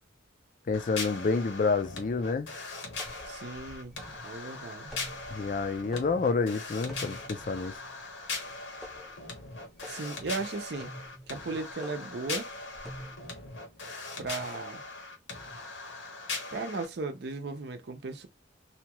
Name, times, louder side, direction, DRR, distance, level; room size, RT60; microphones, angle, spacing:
sound 1, 0.7-16.9, left 3 dB, 80° left, 1.0 m, -40 dB
voice 1, 0.7-2.5 5.3-7.7, left 4 dB, 45° left, 0.4 m, -28 dB
sound 2, 3.0-13.5, equal, ahead, 0.7 m, -49 dB
voice 2, 3.3-4.0 4.2-4.9 9.9-10.9 11.3-12.5 14.2-14.8 16.5-18.3, right 3 dB, 60° right, 0.6 m, -36 dB
2.8 x 2.3 x 2.9 m
head